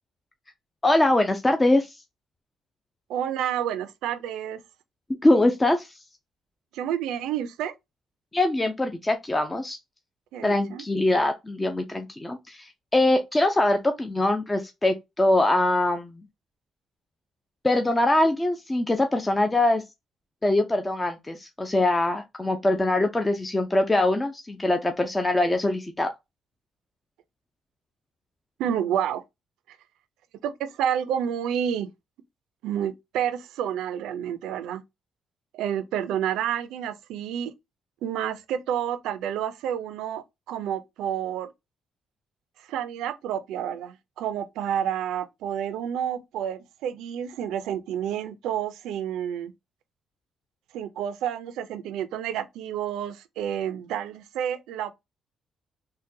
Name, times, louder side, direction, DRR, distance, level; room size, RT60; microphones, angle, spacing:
voice 1, 0.8-2.0 5.2-6.0 8.3-9.8 10.4-16.2 17.6-19.8 20.4-26.1, left 2 dB, 15° left, 0.5 m, -23 dB
voice 2, 3.1-4.6 6.7-7.7 10.3-10.8 28.6-29.2 30.4-31.9 32.6-34.8 35.5-37.5 38.0-41.5 42.6-49.5 50.7-54.9, right 9 dB, 90° right, 0.4 m, -29 dB
3.8 x 2.2 x 2.6 m
cardioid pair, 90°, 0 cm